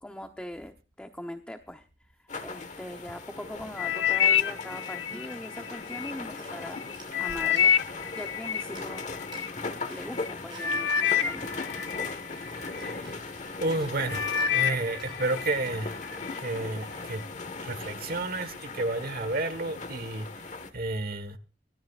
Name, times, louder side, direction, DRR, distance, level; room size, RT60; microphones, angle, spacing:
voice 1, 0.0-1.9 2.2-6.8 7.2-7.7 8.1-9.0 9.9-11.5, left 1 dB, 5° left, 0.8 m, -41 dB
sound 1, 2.3-20.7, left 3 dB, 40° left, 1.4 m, -39 dB
sound 2, 3.8-6.1 6.6-9.5 10.2-10.3 10.6-13.0 13.5-13.8 14.1-15.6 15.9-16.4 17.0-17.1, left 8 dB, 90° left, 1.2 m, -28 dB
sound 3, 4.1-17.5, right 4 dB, 25° right, 6.8 m, -54 dB
voice 2, 12.5-13.2 13.6-16.0 16.4-17.2 17.6-20.3 20.7-21.4, right 2 dB, 55° right, 1.4 m, -31 dB
24.5 x 13.0 x 2.4 m
head